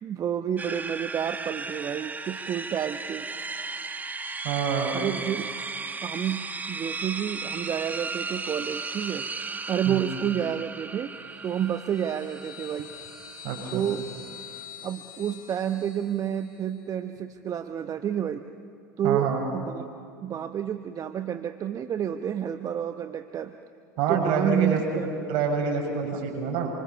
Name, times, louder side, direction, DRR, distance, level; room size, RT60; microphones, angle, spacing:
voice 1, 0.0-3.3 4.9-5.5 6.0-9.3 9.7-11.2 11.4-12.9 13.7-14.1 14.8-18.4 19.0-19.9 20.2-23.5 24.1-25.3 26.1-26.2, right 9 dB, 35° right, 8 dB, 1.0 m, -29 dB
sound 1, 0.6-14.6, right 4 dB, 15° right, 1.4 m, -36 dB
voice 2, 4.4-5.0 9.9-10.0 13.4-13.8 19.0-19.4 24.0-26.7, right 5 dB, 55° right, 1 dB, 7.0 m, -27 dB
sound 2, 11.2-16.7, left 7 dB, 75° left, 2.7 m, -46 dB
27.5 x 24.5 x 7.2 m, 2.4 s
hypercardioid pair, 85°, 10 cm